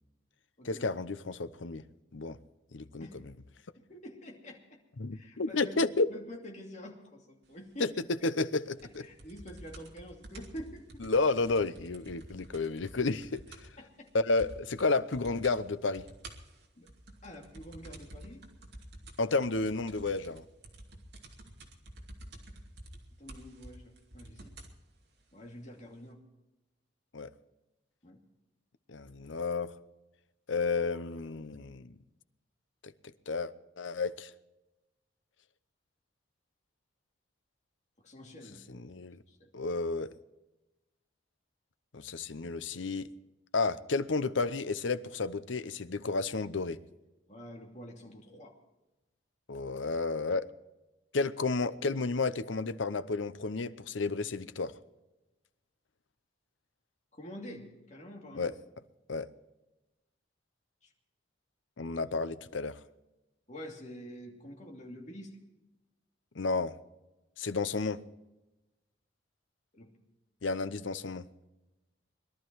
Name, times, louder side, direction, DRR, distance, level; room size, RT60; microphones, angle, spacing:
voice 1, 0.6-1.8 2.1-2.4 2.7-3.2 5.0-6.1 7.8-9.1 11.0-13.4 14.1-16.0 19.2-20.4 27.1-27.3 28.9-29.7 30.5-31.9 32.8-32.9 33.3-34.3 38.7-39.2 39.5-40.1 41.9-43.1 43.5-46.8 49.5-50.5 51.1-54.7 58.3-58.5 59.1-59.3 61.8-62.8 66.4-66.7 67.4-68.0 70.4-71.3, left 3 dB, 85° left, 0.8 m, -31 dB
voice 2, 3.8-4.8 5.1-5.8 6.1-7.9 9.0-11.1 13.8-14.1 16.8-16.9 17.2-18.4 23.2-24.5 25.3-26.2 28.0-28.2 38.0-38.9 39.3-39.5 47.3-48.6 57.1-58.5 63.5-65.4 69.7-69.9, equal, 40° left, 2.7 m, -47 dB
sound 1, 8.8-13.8 14.1-14.2 14.4-14.8 15.1-15.6 15.9-24.8 25.6-25.7, right 1 dB, 60° right, 2.7 m, -50 dB
21.5 x 12.5 x 4.7 m
head